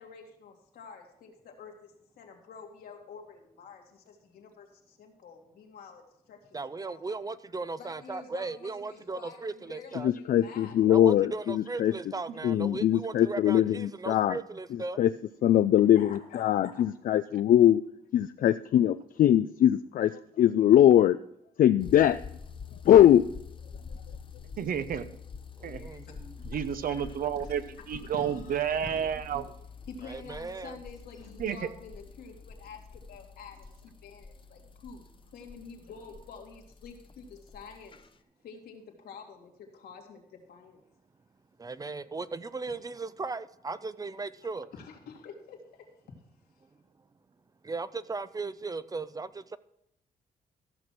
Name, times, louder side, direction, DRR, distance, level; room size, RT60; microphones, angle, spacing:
voice 1, 0.0-7.0 7.8-11.3 13.5-13.6 15.9-16.8 25.8-26.1 26.5-26.6 26.9-27.0 27.4-27.5 27.9-29.0 29.9-35.1 35.3-38.0 38.4-40.8 44.7-46.1, left 5 dB, 85° left, 2 dB, 2.3 m, -48 dB
voice 2, 6.5-10.1 10.9-15.0 25.6-26.4 30.0-30.8 41.6-44.7 47.6-49.6, right 3 dB, 25° right, 15 dB, 0.5 m, -37 dB
voice 3, 10.3-11.9 12.4-14.4 15.0-15.1 15.4-17.8 18.1-21.2 21.6-22.2 22.9-23.3, left 11 dB, 60° left, 11 dB, 0.4 m, -21 dB
sound 1, 21.8-38.1, left 5 dB, 35° left, 0.7 m, -47 dB
voice 4, 24.6-25.0 25.6-25.9 26.4-27.6 27.9-29.5 31.4-31.6, right 8 dB, 65° right, 12 dB, 0.9 m, -31 dB
14.0 x 6.1 x 6.0 m, 0.79 s
cardioid pair, 85°, 16 cm